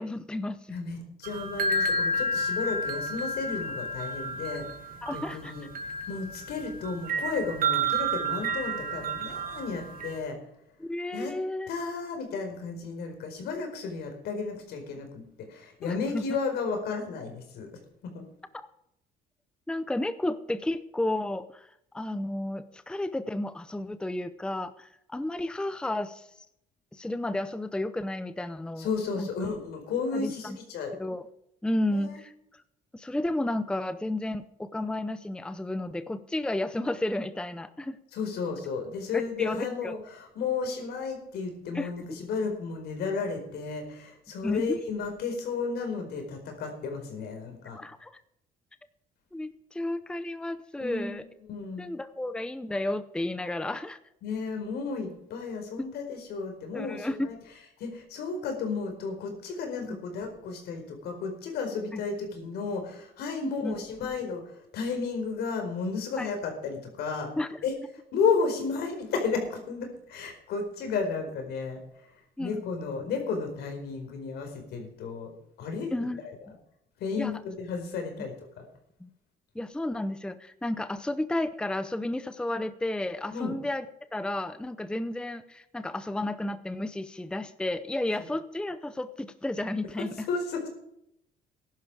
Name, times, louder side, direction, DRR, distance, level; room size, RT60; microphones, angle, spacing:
voice 1, 0.0-0.8 5.0-5.5 10.8-11.7 15.8-16.3 19.7-21.7 21.9-26.5 26.9-28.9 29.2-29.3 30.1-30.6 30.9-31.2 31.6-32.3 32.9-38.0 39.1-39.9 41.7-41.9 44.4-44.8 47.7-48.1 49.3-51.2 51.8-54.0 56.7-57.3 59.9-60.0 61.9-62.0 63.4-63.8 66.2-66.3 67.4-67.6 72.4-72.6 75.9-76.2 77.1-77.3 79.0-79.1 79.5-83.8 84.1-90.3, left 1 dB, 5° left, 12 dB, 0.7 m, -32 dB
voice 2, 0.7-5.7 6.1-10.4 11.1-11.4 11.7-17.7 18.0-18.2 28.8-30.9 31.9-32.2 38.1-47.8 50.8-51.1 51.5-51.8 54.2-57.4 57.8-64.4 64.7-67.3 67.6-67.7 68.1-71.8 72.4-75.3 75.6-76.3 77.0-78.7 83.3-83.5 90.1-90.7, left 5 dB, 75° left, 5 dB, 4.6 m, -33 dB
sound 1, 1.2-10.2, right 2 dB, 60° right, 1.9 m, -31 dB
15.0 x 11.5 x 4.9 m, 0.77 s
cardioid pair, 110°, 17 cm